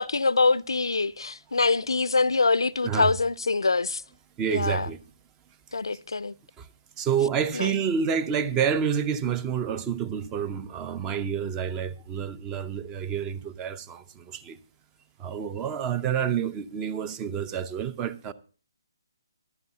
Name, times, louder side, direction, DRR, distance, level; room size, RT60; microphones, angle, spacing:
voice 1, 0.0-4.0 4.5-4.9 5.7-6.3 7.5-7.7, left 3 dB, 85° left, 0.4 m, -24 dB
voice 2, 4.4-5.0 6.6-6.7 7.0-14.6 15.2-18.3, right 7 dB, 20° right, 0.6 m, -28 dB
15.0 x 12.0 x 2.8 m
figure-of-eight pair, 145°, 2 cm